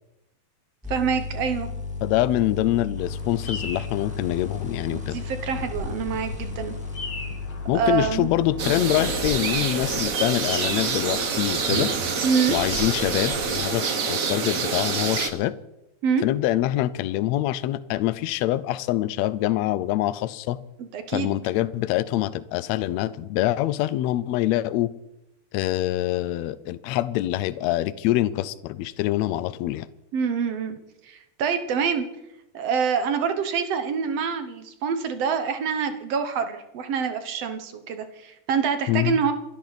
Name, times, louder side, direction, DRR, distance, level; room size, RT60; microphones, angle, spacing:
sound 1, 0.8-9.2, left 4 dB, 5° right, 1.6 m, -34 dB
voice 1, 0.9-1.7 4.9-6.8 7.7-8.3 12.2-12.6 16.0-16.2 20.8-21.4 30.1-30.8 31.0-32.1 32.5-39.3, right 6 dB, 60° right, 8 dB, 2.0 m, -26 dB
voice 2, 2.0-5.2 7.7-11.9 12.5-15.5 16.2-20.6 21.1-24.9 25.5-29.9 38.9-39.2, left 14 dB, 75° left, 16 dB, 1.7 m, -25 dB
Bird vocalization bird call bird song, 3.0-13.5, left 3 dB, 40° left, 2.4 m, -39 dB
sound 2, 8.6-15.3, right 5 dB, 80° right, 0.7 m, -26 dB
27.0 x 12.0 x 4.1 m, 0.89 s
omnidirectional pair, 3.6 m